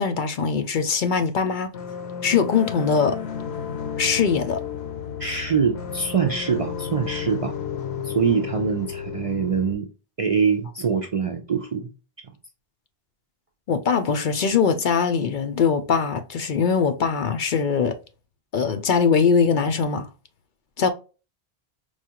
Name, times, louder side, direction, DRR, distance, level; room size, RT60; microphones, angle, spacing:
voice 1, 0.0-1.7 2.2-3.2 4.0-4.6 13.7-18.0 18.5-20.1 20.8-20.9, left 6 dB, 60° left, 0.7 m, -21 dB
sound 1, 1.7-9.7, left 7 dB, 85° left, 1.0 m, -32 dB
voice 2, 5.2-7.6 8.0-9.9 10.2-11.9, right 6 dB, 50° right, 0.4 m, -24 dB
4.7 x 2.4 x 2.8 m
omnidirectional pair, 1.1 m